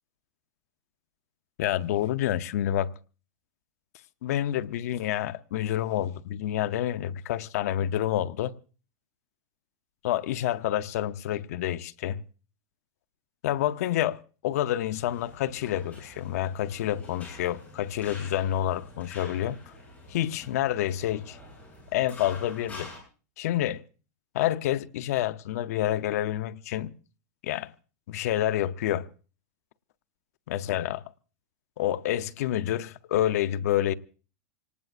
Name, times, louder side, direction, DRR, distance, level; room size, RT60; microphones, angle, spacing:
voice 1, 1.6-2.9 4.2-8.5 10.0-12.2 13.4-19.7 20.1-21.4 21.9-22.9 23.4-23.8 24.3-26.9 27.4-27.7 28.1-29.1 30.5-31.0 31.8-33.9, left 12 dB, 60° left, 0.7 m, -28 dB
sound 1, 14.9-23.0, left 2 dB, 15° left, 7.7 m, -47 dB
26.0 x 19.0 x 2.5 m
supercardioid pair, 160°, 9 cm